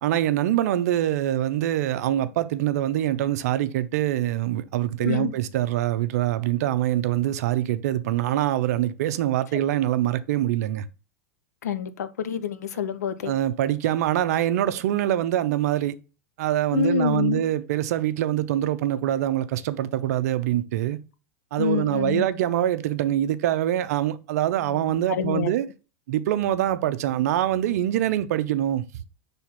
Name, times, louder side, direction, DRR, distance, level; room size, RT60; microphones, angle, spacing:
voice 1, 0.0-10.8 13.2-16.0 16.4-21.0 21.5-25.7 26.1-28.8, right 12 dB, 75° right, 0.6 m, -24 dB
voice 2, 5.0-5.3 11.6-13.3 16.7-17.4 21.6-22.3 24.7-25.5, left 8 dB, 90° left, 0.8 m, -27 dB
5.7 x 3.5 x 5.7 m
hypercardioid pair, 115°, 9 cm